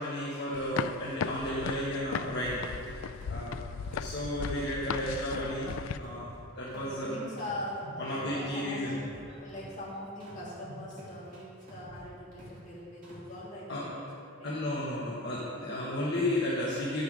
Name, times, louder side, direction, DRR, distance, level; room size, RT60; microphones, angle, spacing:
voice 1, 0.0-2.6 3.3-3.6 3.9-6.3 6.6-7.1 8.0-8.9 13.7-13.9 14.4-17.0, left 1 dB, 55° left, -7 dB, 1.4 m, -33 dB
sound 1, 0.5-6.0, left 6 dB, 90° left, 0.3 m, -37 dB
sound 2, 2.2-4.3 4.6-7.1 7.4-9.9 10.2-12.7 13.0-13.4, equal, 45° right, 2.4 m, -49 dB
voice 2, 6.7-9.0 9.4-14.6, left 1 dB, 40° left, -7 dB, 2.6 m, -42 dB
9.9 x 6.8 x 5.2 m, 2.5 s
head